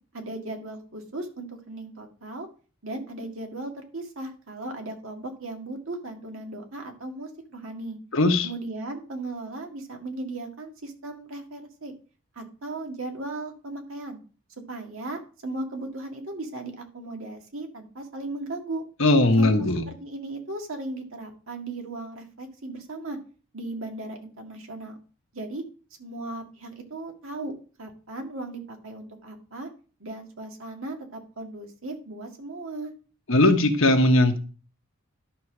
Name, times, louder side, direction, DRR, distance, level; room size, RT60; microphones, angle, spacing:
voice 1, 0.1-2.5 2.8-8.0 8.4-12.0 12.4-14.2 14.7-18.8 19.4-23.2 23.5-25.0 25.3-25.6 26.0-27.5 27.8-29.7 30.0-32.9, right 2 dB, 70° right, 3 dB, 1.9 m, -37 dB
voice 2, 8.1-8.5 19.0-19.8 33.3-34.4, left 2 dB, 65° left, 5 dB, 1.3 m, -19 dB
11.5 x 3.8 x 6.1 m, 0.37 s
head